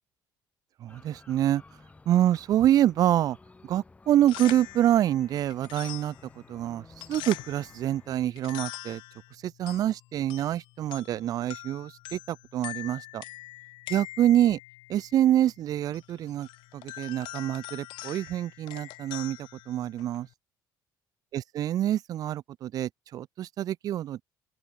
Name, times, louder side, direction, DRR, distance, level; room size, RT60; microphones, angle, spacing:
voice 1, 0.8-1.6 2.1-3.4 3.6-6.1 6.5-6.8 7.1-9.0 9.4-13.2 13.9-14.6 14.9-16.5 16.7-19.4 19.7-20.3 21.3-24.2, right 12 dB, 50° right, 0.4 m, -26 dB
sound 1, 0.9-8.3, left 3 dB, 15° left, 7.1 m, -54 dB
sound 2, 4.1-20.3, left 19 dB, 80° left, 4.3 m, -44 dB
open air
cardioid pair, 110°, 8 cm